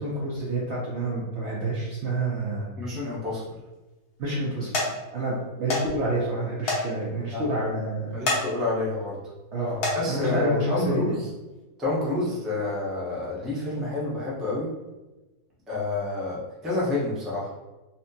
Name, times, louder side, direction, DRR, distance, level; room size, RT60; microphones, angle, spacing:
voice 1, 0.0-2.7 4.2-4.7 5.1-8.2 9.5-9.8 10.1-11.1, right 1 dB, 65° right, -5 dB, 0.7 m, -28 dB
voice 2, 2.8-3.6 7.3-7.4 8.1-9.2 9.9-11.3 11.8-14.7 15.7-17.5, left 2 dB, ahead, -7 dB, 0.5 m, -28 dB
sound 1, 3.3-3.7 4.3-4.5 4.7-4.9 5.7-5.9 6.2-6.3 6.7-6.8 7.2-7.3 8.1-8.4 8.9-9.2 9.7-10.0 10.9-11.1 11.6-11.7, left 2 dB, 80° left, 1.4 m, -27 dB
4.2 x 2.1 x 2.7 m, 1.1 s
omnidirectional pair, 1.7 m